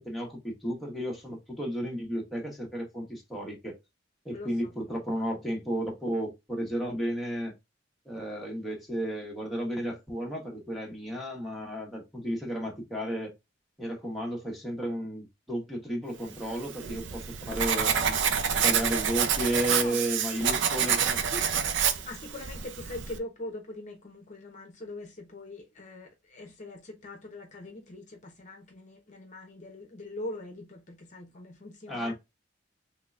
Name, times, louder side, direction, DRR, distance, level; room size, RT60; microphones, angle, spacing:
voice 1, 0.0-3.8 4.2-7.5 8.1-13.3 13.8-18.2 18.5-21.2 31.9-32.1, equal, ahead, 1.0 m, -33 dB
voice 2, 4.3-4.7 19.7-20.0 21.2-32.1, left 2 dB, 40° left, 0.7 m, -42 dB
Writing, 16.5-23.2, right 7 dB, 70° right, 0.5 m, -28 dB
3.7 x 3.2 x 2.4 m
head